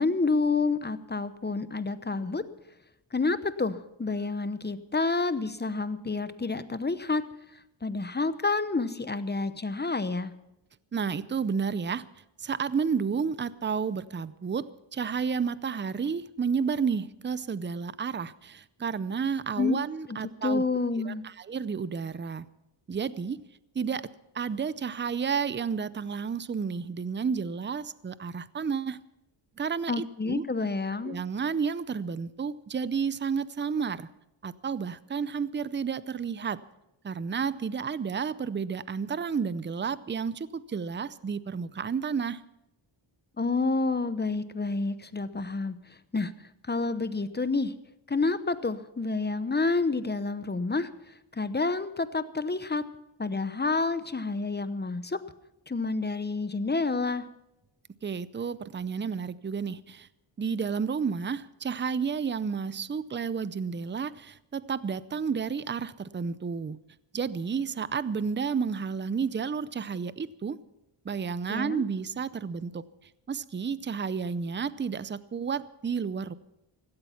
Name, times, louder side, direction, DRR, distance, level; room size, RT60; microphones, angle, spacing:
voice 1, 0.0-2.4 3.1-7.2 7.8-10.3 19.6-19.8 20.1-21.2 29.9-31.2 43.4-46.3 46.7-47.7 48.1-52.8 53.2-55.2 55.7-57.2 71.5-71.8, left 3 dB, 20° left, 13 dB, 0.9 m, -29 dB
voice 2, 10.9-12.1 12.4-20.6 21.1-22.5 22.9-23.4 23.7-29.0 29.6-30.4 31.0-34.1 34.4-36.6 37.0-42.4 58.0-60.1 60.4-66.8 67.1-70.6 71.0-72.9 73.3-76.3, right 6 dB, 25° right, 17 dB, 0.6 m, -31 dB
16.5 x 13.5 x 5.8 m, 0.86 s
wide cardioid pair, 90°, 49 cm